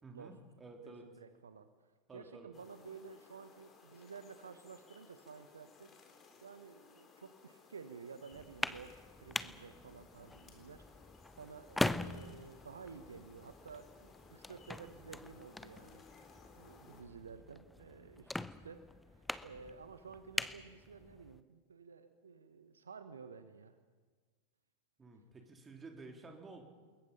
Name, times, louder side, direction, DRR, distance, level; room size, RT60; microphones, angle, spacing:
voice 1, 0.0-1.1 2.1-2.5 25.0-26.6, right 3 dB, 15° right, 3 dB, 3.4 m, -52 dB
voice 2, 0.8-5.9 6.4-16.3 16.6-23.8, right 5 dB, 70° right, 10 dB, 1.2 m, -53 dB
sound 1, 2.5-17.0, left 5 dB, 25° left, 4.0 m, -61 dB
sound 2, 8.3-21.4, left 2 dB, 5° left, 0.7 m, -43 dB
27.5 x 21.5 x 5.6 m, 1.5 s
figure-of-eight pair, 90°, 0 cm